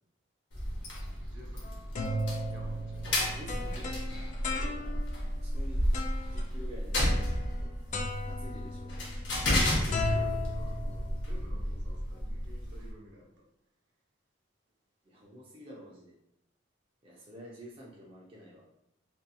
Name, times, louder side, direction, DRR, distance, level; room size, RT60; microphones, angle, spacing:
sound 1, 0.5-12.9, equal, 70° left, 0.7 m, -33 dB
voice 1, 1.3-1.8 2.5-3.1 9.7-13.3, equal, 65° right, -2 dB, 0.7 m, -52 dB
sound 2, 1.6-5.2 5.9-6.4 6.9-7.6 7.9-11.4, left 1 dB, 40° left, 0.3 m, -36 dB
voice 2, 3.3-3.9 4.5-5.0 5.3-5.9 6.3-7.2 7.6-7.7 8.3-8.9 15.0-16.1 17.0-18.7, equal, 30° right, -4 dB, 0.4 m, -49 dB
2.6 x 2.6 x 2.2 m, 0.78 s
head